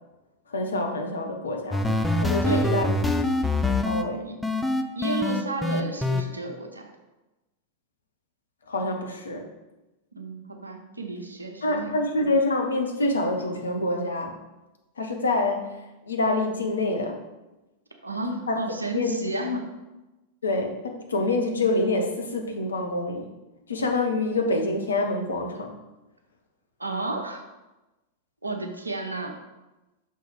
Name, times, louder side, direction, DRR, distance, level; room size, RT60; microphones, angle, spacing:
voice 1, 0.5-1.9 2.2-3.0 3.8-4.2 8.7-9.5 11.6-14.4 15.0-15.7 16.1-17.2 18.5-18.6 18.9-19.4 20.4-23.3 23.7-25.8, left 2 dB, 70° left, 3 dB, 0.8 m, -26 dB
sound 1, 1.7-4.0 4.4-6.2, left 2 dB, 5° left, 0.4 m, -24 dB
voice 2, 5.0-6.9 10.1-11.9 18.0-19.7 26.8-27.4 28.4-29.4, right 2 dB, 80° right, 3 dB, 0.8 m, -32 dB
6.1 x 3.5 x 4.7 m, 1.0 s
figure-of-eight pair, 90°, 0 cm